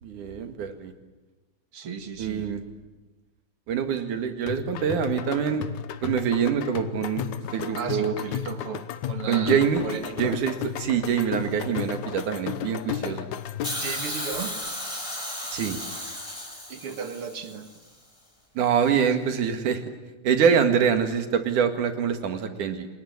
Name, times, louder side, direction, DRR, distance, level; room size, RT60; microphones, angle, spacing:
voice 1, 0.0-0.9 2.2-2.6 3.7-5.7 6.0-7.2 7.5-8.1 9.3-9.9 10.2-13.3 15.5-15.8 18.6-19.8 20.2-22.9, right 7 dB, 85° right, 8 dB, 3.4 m, -25 dB
voice 2, 1.7-2.5 7.8-10.4 13.8-14.6 16.7-17.7, right 6 dB, 50° right, 8 dB, 2.4 m, -35 dB
sound 1, 4.5-14.0, left 10 dB, 75° left, 2.4 m, -34 dB
Hiss, 13.6-17.8 18.8-18.9, left 1 dB, 10° left, 5.0 m, -34 dB
28.0 x 20.0 x 9.6 m, 1.2 s
omnidirectional pair, 3.5 m